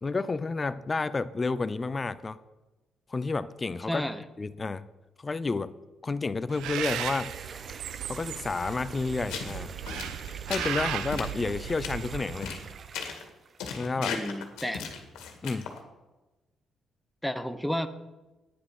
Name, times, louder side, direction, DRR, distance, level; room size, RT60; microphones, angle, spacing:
voice 1, 0.0-2.4 3.1-4.0 4.4-4.9 5.2-5.7 6.0-7.3 8.1-9.8 10.5-12.5 13.7-14.1 15.4-15.7, left 3 dB, 30° left, 14 dB, 0.6 m, -30 dB
voice 2, 3.9-4.2 14.0-14.9 17.2-17.9, equal, ahead, 9 dB, 0.9 m, -32 dB
sound 1, 6.3-13.8, right 5 dB, 45° right, 0.7 m, -45 dB
Bird, 6.5-12.9, right 11 dB, 90° right, 0.7 m, -36 dB
sound 2, 9.3-9.6 9.9-10.7 11.1-11.3 11.7-11.9 12.4-12.6 12.9-13.3 13.6-15.8, left 6 dB, 90° left, 1.9 m, -36 dB
10.0 x 9.6 x 6.1 m, 1.1 s
cardioid pair, 80°, 0 cm